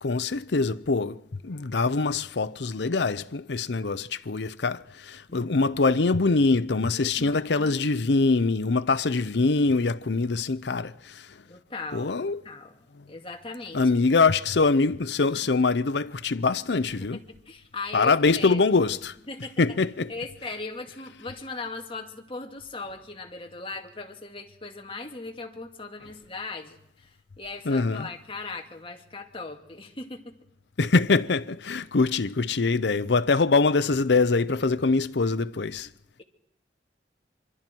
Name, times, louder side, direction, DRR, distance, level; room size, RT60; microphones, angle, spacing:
voice 1, 0.0-11.4 11.9-12.4 13.7-17.2 17.9-19.2 19.6-20.1 27.7-28.1 30.8-35.9, left 3 dB, 75° left, 0.7 m, -24 dB
voice 2, 6.9-7.9 11.4-12.8 13.1-13.9 17.1-18.6 19.3-19.6 20.1-30.4, left 3 dB, 30° left, 2.3 m, -39 dB
26.0 x 24.0 x 4.6 m
head